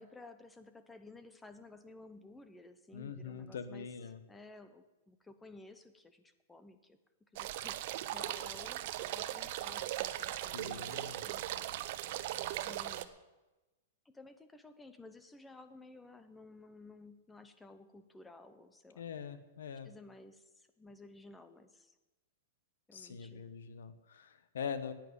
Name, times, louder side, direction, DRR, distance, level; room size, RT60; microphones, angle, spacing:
voice 1, 0.0-3.9 4.3-10.9 11.2-11.7 12.5-13.2 14.0-19.0 19.8-21.9 22.9-23.5, left 2 dB, 5° left, 10 dB, 0.7 m, -55 dB
voice 2, 2.9-4.2 10.5-11.2 19.0-19.9 22.9-24.9, left 6 dB, 90° left, 12 dB, 1.2 m, -43 dB
sound 1, 7.4-13.1, right 14 dB, 40° right, 0.6 m, -39 dB
10.5 x 9.1 x 9.7 m, 1.1 s
supercardioid pair, 175°, 0 cm